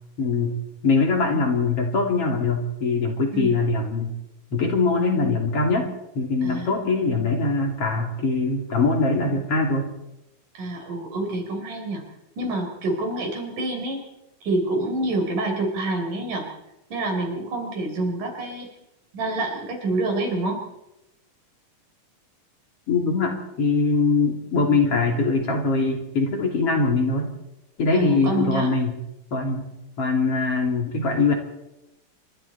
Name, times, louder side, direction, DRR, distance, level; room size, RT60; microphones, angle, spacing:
voice 1, 0.2-0.5 0.8-4.1 4.5-5.9 6.2-9.9 22.9-27.3 27.8-29.0 29.3-29.7 30.0-31.3, left 3 dB, 45° left, 2 dB, 3.7 m, -22 dB
voice 2, 10.6-12.0 12.4-14.0 14.4-16.5 16.9-18.7 19.1-20.6 27.9-28.7, right 2 dB, 70° right, 3 dB, 5.3 m, -27 dB
27.5 x 24.5 x 4.3 m, 0.92 s
omnidirectional pair, 3.8 m